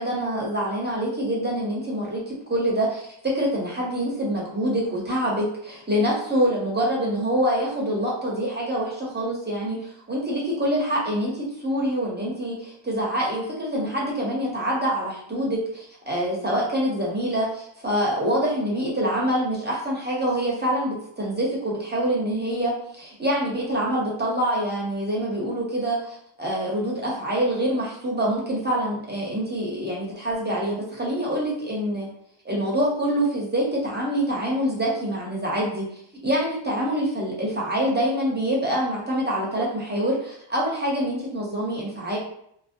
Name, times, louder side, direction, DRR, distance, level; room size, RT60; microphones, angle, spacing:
voice 1, 0.0-32.1 32.4-35.8 36.2-42.2, right 1 dB, 20° right, -4 dB, 0.8 m, -25 dB
2.4 x 2.1 x 2.5 m, 0.71 s
cardioid pair, 80°, 50 cm